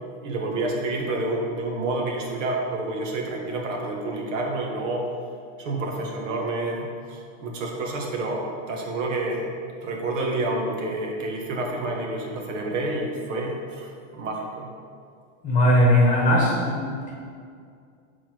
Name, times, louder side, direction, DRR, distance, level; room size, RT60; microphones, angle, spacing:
voice 1, 0.2-5.1 5.6-9.4 9.8-14.7, right 2 dB, 65° right, 0 dB, 1.5 m, -29 dB
voice 2, 15.4-17.1, left 1 dB, 20° left, -4 dB, 1.3 m, -19 dB
6.9 x 4.4 x 4.6 m, 2.2 s
supercardioid pair, 155°, 40 cm